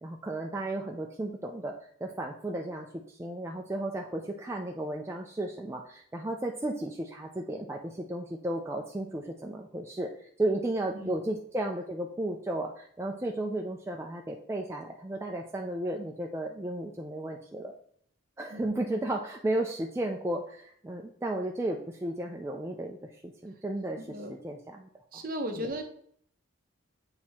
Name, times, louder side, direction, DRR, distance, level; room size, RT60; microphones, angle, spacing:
voice 1, 0.0-17.7 18.4-25.2 25.6-25.7, right 1 dB, 15° right, 1 dB, 0.3 m, -34 dB
voice 2, 25.1-25.8, equal, 45° right, 4 dB, 0.9 m, -35 dB
7.9 x 2.8 x 4.2 m, 0.63 s
head